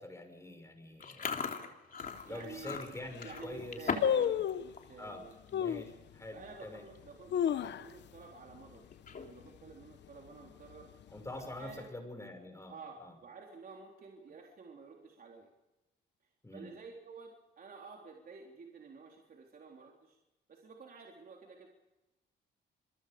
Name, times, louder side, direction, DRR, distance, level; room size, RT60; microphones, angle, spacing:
voice 1, 0.0-1.4 2.3-4.4 5.0-6.9 7.6-7.7 11.1-12.7 13.0-13.1 16.4-16.7, left 1 dB, 15° left, 5 dB, 6.2 m, -45 dB
Chewing mastication, 1.0-4.3 4.6-4.9 5.3-5.5 6.3-6.4 6.6-7.0 7.4-7.5 8.9-9.5, left 5 dB, 45° left, 3.3 m, -39 dB
sound 1, 2.0-2.1 2.7-2.8 3.0-3.4 4.0-4.8 5.5-5.9 6.4-6.5 7.1-8.2 8.5-8.6 8.9-9.3 9.7-10.1 10.7-11.4 11.7-11.8, left 9 dB, 65° left, 1.0 m, -32 dB
voice 2, 2.3-2.8 3.2-5.3 6.3-8.8 9.1-10.9 11.3-11.9 12.7-15.5 16.5-20.2 20.5-21.7, right 4 dB, 45° right, 0 dB, 3.7 m, -51 dB
27.5 x 22.5 x 5.2 m, 1.0 s
cardioid pair, 90°, 20 cm